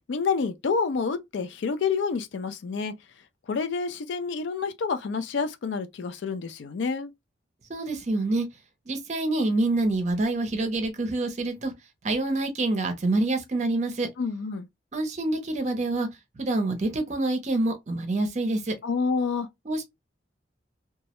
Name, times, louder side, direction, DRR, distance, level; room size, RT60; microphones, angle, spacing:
voice 1, 0.1-2.9 3.5-7.1 14.2-14.7 18.8-19.5, left 5 dB, 80° left, 0.4 m, -28 dB
voice 2, 7.7-8.5 8.9-11.7 12.0-14.1 14.9-16.1 16.4-18.7 19.7-19.8, right 2 dB, 40° right, 0.5 m, -26 dB
2.3 x 2.0 x 2.8 m
head